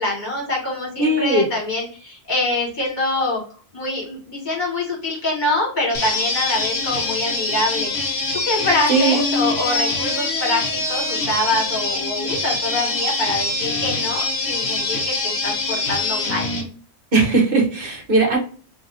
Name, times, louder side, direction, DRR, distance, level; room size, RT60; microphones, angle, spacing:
voice 1, 0.0-3.4 3.7-16.5, left 2 dB, 40° left, -3 dB, 1.6 m, -25 dB
voice 2, 1.0-1.5 8.9-9.2 17.1-18.4, right 3 dB, 50° right, 1 dB, 0.9 m, -18 dB
sound 1, 5.9-16.6, left 3 dB, 60° left, 1.0 m, -24 dB
2.8 x 2.6 x 2.6 m, 0.41 s
omnidirectional pair, 1.3 m